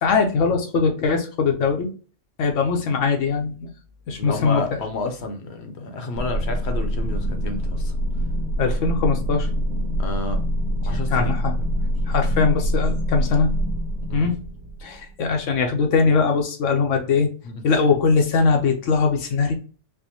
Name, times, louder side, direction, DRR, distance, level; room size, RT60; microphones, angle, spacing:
voice 1, 0.0-1.9 2.4-3.6 4.1-4.6 8.6-9.5 11.1-11.6 12.1-13.5 14.1-14.4 14.8-17.3 17.6-19.5, left 5 dB, 80° left, 1.0 m, -21 dB
voice 2, 4.2-7.9 10.0-10.4 10.8-11.4 14.1-14.3 17.4-17.6, left 2 dB, 65° left, 0.9 m, -31 dB
sound 1, 6.1-15.4, equal, 65° right, 0.8 m, -25 dB
4.6 x 2.1 x 2.8 m
omnidirectional pair, 1.3 m